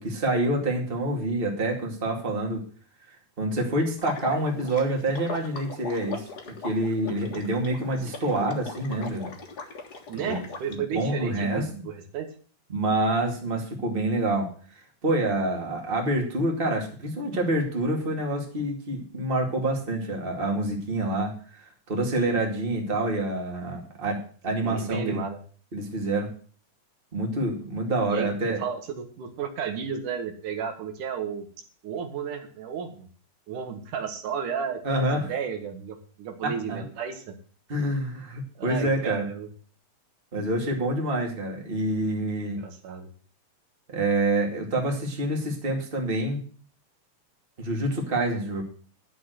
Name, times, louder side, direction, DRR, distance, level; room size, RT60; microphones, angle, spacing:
voice 1, 0.0-2.6 3.4-9.3 10.1-10.4 10.9-11.6 12.7-14.5 15.0-25.2 25.7-26.3 27.1-28.6 34.8-35.3 36.4-36.8 37.7-39.3 40.3-42.6 43.9-46.4 47.6-48.6, right 1 dB, 20° right, 0 dB, 2.2 m, -27 dB
Water / Liquid, 4.0-10.7, left 4 dB, 40° left, 1.7 m, -39 dB
voice 2, 10.1-12.3 24.6-25.4 28.1-31.5 31.8-33.1 33.5-37.3 38.6-39.5 42.4-43.1, right 7 dB, 75° right, 5 dB, 2.9 m, -33 dB
11.0 x 6.1 x 7.9 m, 0.43 s
omnidirectional pair, 3.6 m